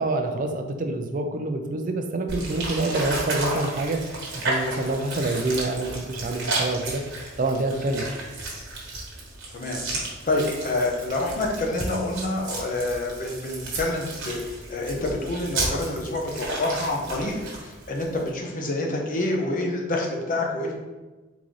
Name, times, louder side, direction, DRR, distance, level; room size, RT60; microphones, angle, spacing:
voice 1, 0.0-7.0 7.4-8.1, right 2 dB, 40° right, 5 dB, 0.5 m, -27 dB
sound 1, 2.3-18.3, right 2 dB, 60° right, 1.2 m, -33 dB
voice 2, 10.3-20.7, left 2 dB, 40° left, 0 dB, 0.7 m, -27 dB
3.9 x 3.7 x 3.2 m, 1.2 s
head